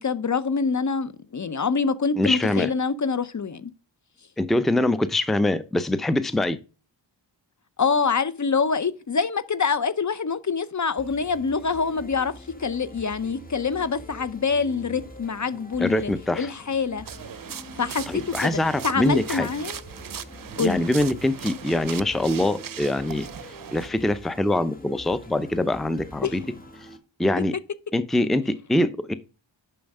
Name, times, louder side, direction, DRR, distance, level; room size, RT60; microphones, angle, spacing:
voice 1, 0.0-3.7 7.8-12.3 12.6-16.1 16.4-17.0 17.8-19.8 20.6-20.8 26.2-26.5, left 5 dB, 40° left, 0.6 m, -25 dB
voice 2, 2.2-2.7 4.4-6.6 15.8-16.5 18.1-19.5 20.6-23.3 23.7-26.4 27.2-27.5 27.9-29.1, left 1 dB, ahead, 0.6 m, -24 dB
sound 1, 11.0-27.0, left 1 dB, 20° left, 1.8 m, -45 dB
sound 2, 17.1-23.9, right 8 dB, 50° right, 0.6 m, -38 dB
7.0 x 5.8 x 5.3 m
cardioid pair, 65°, 45 cm